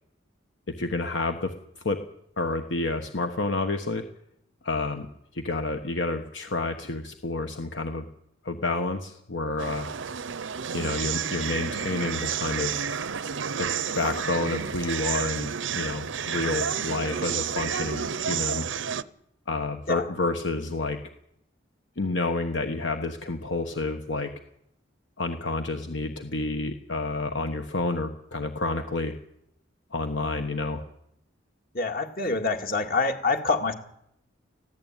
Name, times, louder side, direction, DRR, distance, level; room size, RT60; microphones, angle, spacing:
voice 1, 0.7-1.5 1.8-2.0 2.4-4.0 4.6-5.1 5.3-8.0 8.4-9.9 10.7-12.8 13.6-13.7 13.9-18.7 19.5-21.0 22.0-24.3 25.2-29.2 29.9-30.8, left 2 dB, 70° left, 6 dB, 1.2 m, -29 dB
sound 1, 9.6-19.0, right 7 dB, 80° right, 0.7 m, -30 dB
voice 2, 31.7-33.7, left 3 dB, 50° left, 5 dB, 2.1 m, -26 dB
20.5 x 15.5 x 9.0 m, 0.77 s
head